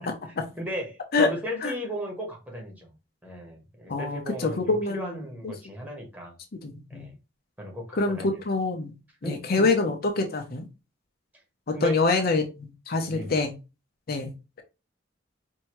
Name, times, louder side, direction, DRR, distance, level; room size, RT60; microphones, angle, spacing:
voice 1, 0.1-0.4 1.1-1.3 1.6-1.7 3.9-5.2 6.6-7.1 7.9-8.9 9.2-10.6 11.7-13.5 14.1-14.3, left 3 dB, 50° left, 0.7 m, -26 dB
voice 2, 0.6-2.9 3.2-6.3 6.9-7.1 7.6-8.3 9.2-9.7 11.7-12.0 13.1-13.4, left 1 dB, 10° right, 1.1 m, -35 dB
4.5 x 2.7 x 3.0 m
head